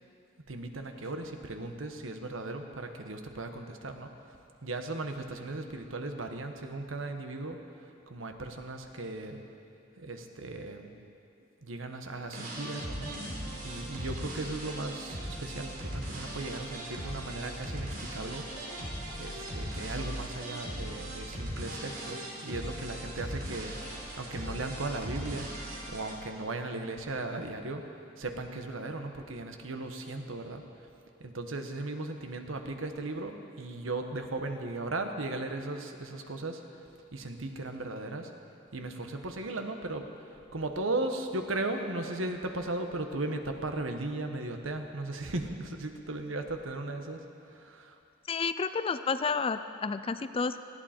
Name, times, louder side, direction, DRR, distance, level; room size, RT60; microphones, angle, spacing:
voice 1, 0.5-4.1 4.6-7.6 8.1-9.4 10.0-10.9 11.6-13.1 13.6-18.4 19.2-23.7 24.1-25.5 25.9-27.8 28.2-30.6 31.2-36.6 37.1-38.3 38.7-40.1 40.5-48.0, right 2 dB, 75° right, 5 dB, 1.3 m, -37 dB
sound 1, 12.3-26.1, right 1 dB, 50° right, 3.5 m, -39 dB
voice 2, 48.3-50.6, left 4 dB, 30° left, 11 dB, 0.4 m, -30 dB
19.0 x 15.0 x 4.4 m, 2.6 s
head